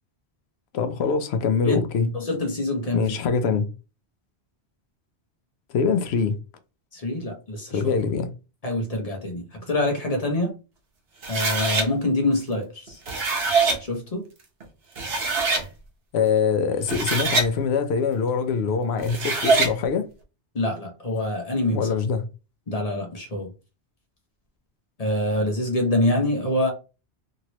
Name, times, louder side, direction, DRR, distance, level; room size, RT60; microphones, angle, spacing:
voice 1, 0.7-2.1 2.9-3.7 5.7-6.4 7.7-8.3 16.1-20.1 21.7-22.2, left 5 dB, 70° left, 0.8 m, -23 dB
voice 2, 1.6-3.1 6.9-7.8 8.6-10.5 11.3-13.0 13.8-14.2 20.5-21.9 22.7-23.5 25.0-26.7, left 1 dB, 40° left, 0.8 m, -25 dB
sound 1, 11.2-11.9 12.9-13.8 14.6-14.7 15.0-15.7 16.7-17.5 19.0-19.7, right 3 dB, 65° right, 1.0 m, -23 dB
2.9 x 2.8 x 2.9 m
omnidirectional pair, 1.1 m